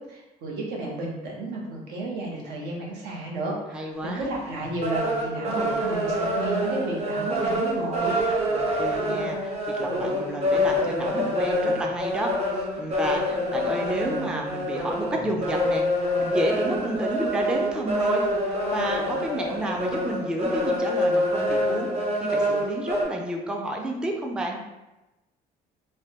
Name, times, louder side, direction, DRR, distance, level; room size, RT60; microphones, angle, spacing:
voice 1, 0.1-8.1, right 2 dB, 80° right, -2 dB, 0.8 m, -32 dB
voice 2, 3.7-4.3 8.5-21.9 22.2-24.6, right 1 dB, 5° right, 1 dB, 0.3 m, -31 dB
sound 1, 4.2-4.3 4.6-23.0, equal, 40° right, 0.7 m, -26 dB
3.2 x 2.1 x 2.8 m, 1.0 s
cardioid pair, 110°, 17 cm